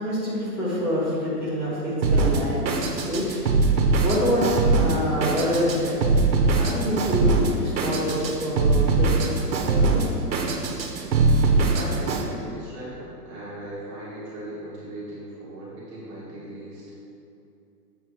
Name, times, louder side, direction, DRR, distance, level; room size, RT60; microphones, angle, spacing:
voice 1, 0.0-3.4 4.0-6.0 6.6-10.1, equal, 20° left, -8 dB, 1.6 m, -26 dB
Drum kit, 2.0-12.2, right 3 dB, 85° right, 1.3 m, -22 dB
voice 2, 11.7-16.9, right 1 dB, 20° right, -9 dB, 1.5 m, -38 dB
7.8 x 4.6 x 4.8 m, 2.7 s
hypercardioid pair, 170°, 50 cm